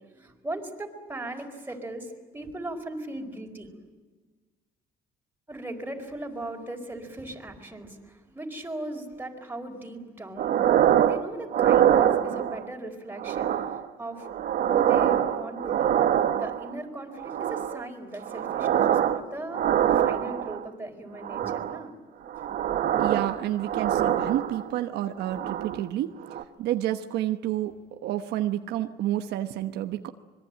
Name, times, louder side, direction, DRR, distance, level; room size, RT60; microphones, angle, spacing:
voice 1, 0.0-3.7 5.5-10.6 11.0-14.3 14.7-15.9 16.4-21.9, right 1 dB, 10° right, 2 dB, 4.6 m, -38 dB
sound 1, 10.4-11.2 11.5-12.7 13.2-13.9 14.2-16.7 17.2-17.9 18.2-19.2 19.5-20.6 21.2-21.8 22.3-24.8 25.2-25.8 26.2-26.4, right 10 dB, 60° right, 1.5 m, -24 dB
voice 2, 23.0-26.1 26.6-27.7 28.0-30.1, right 13 dB, 80° right, 7 dB, 1.2 m, -29 dB
25.5 x 22.5 x 9.0 m, 1.4 s
cardioid pair, 110°, 17 cm